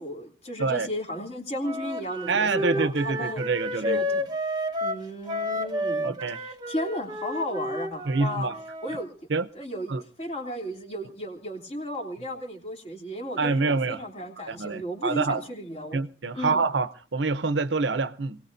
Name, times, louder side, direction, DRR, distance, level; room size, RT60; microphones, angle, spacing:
voice 1, 0.0-3.4 3.7-4.3 4.8-8.5 8.8-9.1 9.5-9.9 10.2-16.0 16.3-16.6, equal, 35° left, 3.0 m, -34 dB
Wind instrument woodwind instrument, 1.6-9.0, equal, 25° right, 1.3 m, -31 dB
voice 2, 2.3-4.0 6.0-6.4 8.1-8.5 9.3-9.5 9.9-10.0 13.4-14.0 14.5-15.4 15.9-18.4, right 3 dB, 80° right, 0.8 m, -26 dB
27.5 x 18.0 x 2.7 m
head